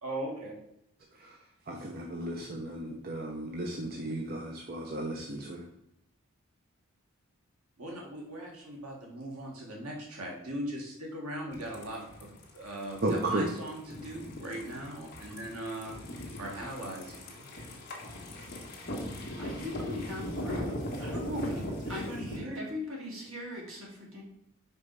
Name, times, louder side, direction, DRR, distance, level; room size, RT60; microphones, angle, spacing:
voice 1, 0.0-0.5 7.8-12.3 12.5-15.9 16.4-17.5 21.0-21.6 21.9-22.6, right 1 dB, 85° right, -1 dB, 1.6 m, -39 dB
voice 2, 1.7-5.6 13.0-13.5, right 1 dB, 45° right, 0 dB, 0.7 m, -34 dB
sound 1, 11.5-22.4, left 1 dB, 40° left, 1.5 m, -40 dB
voice 3, 19.4-21.0 21.3-21.6 21.9-22.1 22.4-24.2, left 2 dB, 65° right, -3 dB, 2.6 m, -40 dB
5.4 x 5.4 x 4.7 m, 0.79 s
head